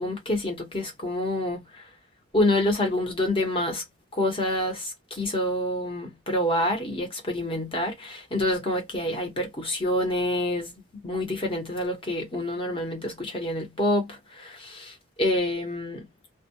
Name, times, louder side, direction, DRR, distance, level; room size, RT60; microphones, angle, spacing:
voice 1, 0.0-1.6 2.3-3.8 4.1-10.7 11.0-14.9 15.2-16.0, left 1 dB, 25° left, 0.9 m, -27 dB
2.2 x 2.1 x 2.8 m
head